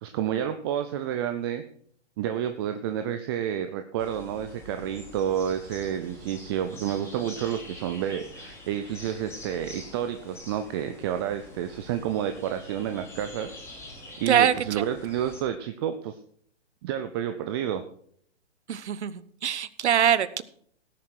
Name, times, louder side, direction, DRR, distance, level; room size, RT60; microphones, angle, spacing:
voice 1, 0.0-1.6 2.2-13.5 14.2-16.2 16.8-17.8, right 10 dB, 20° right, 8 dB, 0.5 m, -30 dB
sound 1, 4.0-15.4, left 2 dB, 5° left, 3.0 m, -45 dB
voice 2, 14.3-14.8 18.7-20.4, right 9 dB, 70° right, 16 dB, 1.0 m, -24 dB
17.5 x 7.3 x 4.5 m, 0.62 s
hypercardioid pair, 135°, 36 cm